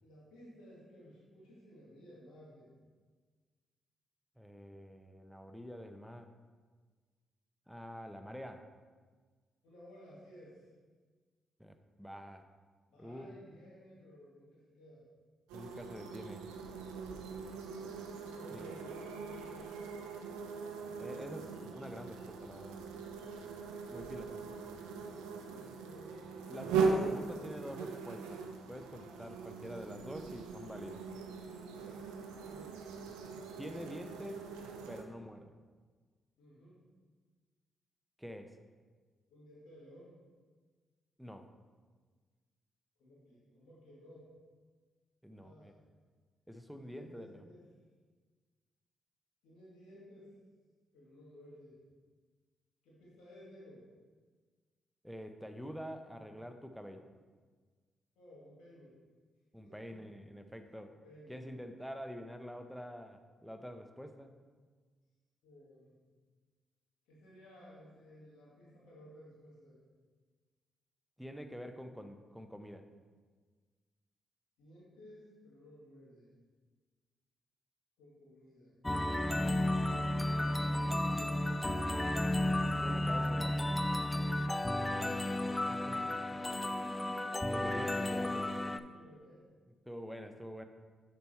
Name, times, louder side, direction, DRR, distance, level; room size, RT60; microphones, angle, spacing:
voice 1, 0.0-2.8 9.6-10.7 12.9-15.0 17.1-17.4 18.3-19.8 23.8-24.3 25.4-26.2 31.7-32.0 32.5-32.8 36.4-36.8 39.3-40.1 43.0-44.3 45.3-45.8 46.8-47.6 49.4-50.3 50.9-51.8 52.8-53.9 58.2-58.9 59.6-60.0 61.0-61.4 65.4-65.9 67.1-69.8 74.6-76.3 78.0-78.7 80.1-82.3 84.4-86.5 86.7-89.4, equal, 85° left, -7 dB, 2.2 m, -56 dB
voice 2, 4.4-6.3 7.7-8.7 11.6-12.4 13.0-13.3 15.5-16.4 18.5-18.7 21.0-22.8 23.9-24.3 26.5-28.4 28.7-31.0 33.6-34.5 34.9-35.6 38.2-38.6 41.2-41.5 45.2-45.7 46.5-47.4 55.0-57.0 59.5-60.9 61.3-64.3 71.2-72.8 82.8-83.7 85.9-86.2 87.5-88.5 89.9-90.7, equal, ahead, 6 dB, 0.7 m, -46 dB
sound 1, 15.5-35.0, right 4 dB, 90° right, 0.5 m, -40 dB
sound 2, 78.8-88.8, left 1 dB, 20° left, 0.4 m, -33 dB
6.8 x 4.6 x 4.4 m, 1.5 s
supercardioid pair, 50°, 0 cm